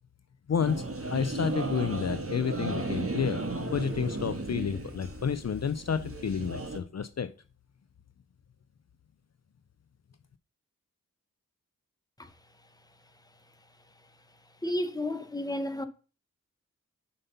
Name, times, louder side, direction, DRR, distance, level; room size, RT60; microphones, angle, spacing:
voice 1, 0.5-0.8 1.1-7.3, left 7 dB, 55° left, 0.5 m, -30 dB
sound 1, 0.6-6.8, right 2 dB, 45° right, 1.5 m, -35 dB
voice 2, 14.6-15.9, left 1 dB, 10° left, 1.0 m, -32 dB
7.5 x 5.4 x 5.6 m
wide cardioid pair, 95°, 33 cm